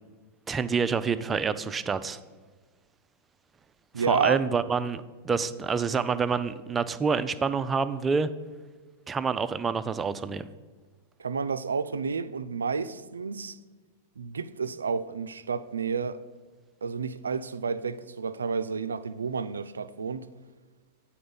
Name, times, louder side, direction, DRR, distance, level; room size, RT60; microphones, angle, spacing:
voice 1, 0.5-2.2 4.1-8.3 9.1-10.5, right 5 dB, 20° right, 0.4 m, -27 dB
voice 2, 3.9-4.4 11.2-13.6 14.2-16.2 16.8-20.3, right 5 dB, 90° right, 0.3 m, -30 dB
8.6 x 4.3 x 5.3 m
hypercardioid pair, 105°, 0 cm